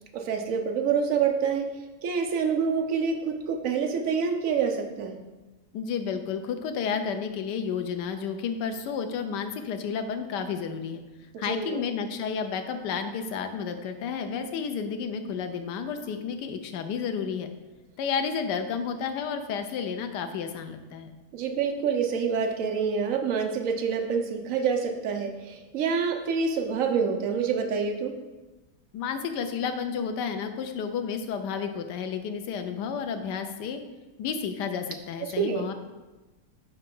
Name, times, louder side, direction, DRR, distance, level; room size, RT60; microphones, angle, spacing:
voice 1, 0.1-1.7 2.0-5.2 11.3-11.8 21.3-28.1 35.2-35.7, right 6 dB, 60° right, 4 dB, 1.0 m, -27 dB
voice 2, 5.7-11.0 11.4-17.5 18.0-21.1 28.9-33.8 34.2-35.7, left 6 dB, 85° left, 7 dB, 1.3 m, -31 dB
5.6 x 4.8 x 5.3 m, 1.1 s
omnidirectional pair, 1.8 m